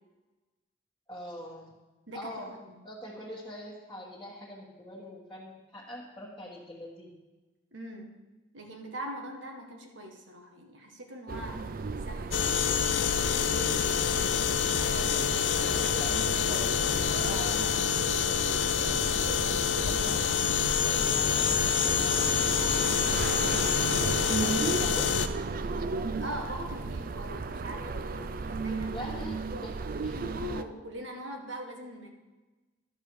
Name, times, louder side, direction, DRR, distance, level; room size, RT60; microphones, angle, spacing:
voice 1, 1.1-1.7 2.1-7.1 15.6-18.1 18.8-22.2 22.9-23.6 24.4-25.3 28.9-30.1, equal, 10° left, -9 dB, 1.6 m, -44 dB
voice 2, 2.1-2.8 7.7-8.1 8.5-13.0 13.4-14.5 14.8-15.7 22.5-23.3 25.8-29.1 29.9-32.1, equal, 80° right, 2 dB, 1.5 m, -43 dB
sound 1, 11.3-30.6, right 4 dB, 45° right, 0.4 m, -35 dB
sound 2, 12.3-25.3, left 7 dB, 70° left, 0.5 m, -27 dB
11.5 x 6.9 x 4.7 m, 1.2 s
head